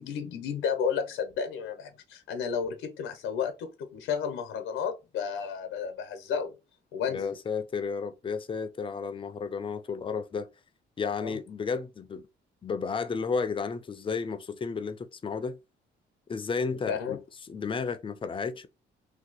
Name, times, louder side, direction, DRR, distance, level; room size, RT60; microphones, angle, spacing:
voice 1, 0.0-6.5 6.9-7.4 11.2-11.4 16.9-17.2, left 7 dB, 90° left, 0.7 m, -32 dB
voice 2, 7.1-10.5 11.0-12.3 12.6-15.6 16.3-18.7, left 5 dB, 25° left, 0.4 m, -32 dB
2.7 x 2.3 x 3.9 m
cardioid pair, 90°, 20 cm